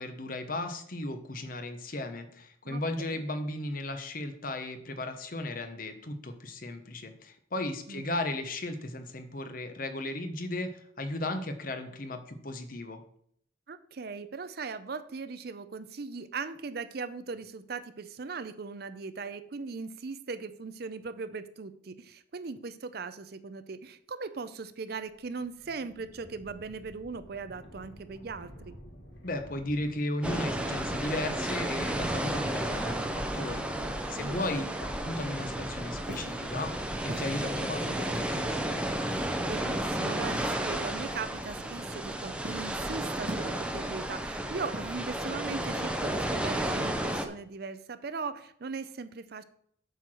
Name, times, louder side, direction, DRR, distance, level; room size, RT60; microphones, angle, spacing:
voice 1, 0.0-13.0 29.2-34.7 35.0-38.8, left 2 dB, 45° left, 8 dB, 0.9 m, -35 dB
voice 2, 2.6-3.2 7.9-8.1 13.7-28.7 34.1-34.7 39.4-49.4, right 4 dB, 55° right, 12 dB, 0.5 m, -39 dB
sound 1, 24.9-30.0, equal, 75° left, 1.5 m, -51 dB
sound 2, 30.2-47.3, right 1 dB, 5° right, 0.6 m, -32 dB
Walk footsteps, 36.0-36.4 37.1-37.3 38.1-38.5 39.1-39.4 40.3-40.6 41.6-42.0 42.4-42.7 43.3-43.8 44.7-45.2, right 1 dB, 70° right, 1.3 m, -42 dB
7.9 x 4.7 x 6.2 m, 0.66 s
head